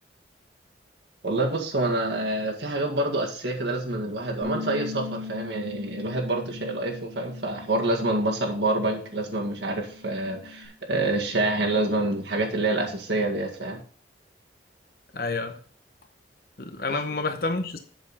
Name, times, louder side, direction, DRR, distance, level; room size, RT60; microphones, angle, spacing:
voice 1, 1.2-13.8, right 2 dB, 80° right, 1 dB, 1.9 m, -27 dB
Bass guitar, 4.4-10.7, left 4 dB, 15° right, 1.8 m, -40 dB
voice 2, 15.1-15.6 16.6-17.8, left 3 dB, 55° left, 7 dB, 0.9 m, -29 dB
8.0 x 6.8 x 4.2 m, 0.43 s
head